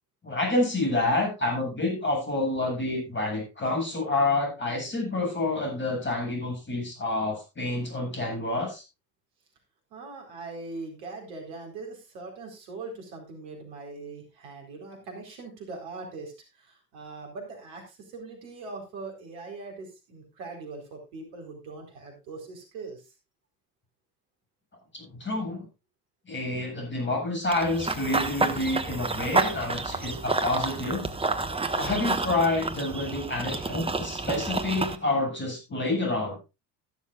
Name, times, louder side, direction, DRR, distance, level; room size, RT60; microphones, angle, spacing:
voice 1, 0.2-8.8 24.9-25.7 26.3-31.1 31.8-36.4, left 2 dB, 25° left, 2 dB, 8.0 m, -28 dB
voice 2, 9.9-23.0, right 3 dB, 60° right, 2 dB, 4.4 m, -41 dB
Run / Bird vocalization bird call bird song, 27.5-35.0, right 3 dB, 10° right, 1.5 m, -29 dB
14.5 x 12.0 x 2.5 m, 0.26 s
figure-of-eight pair, 60°, 48 cm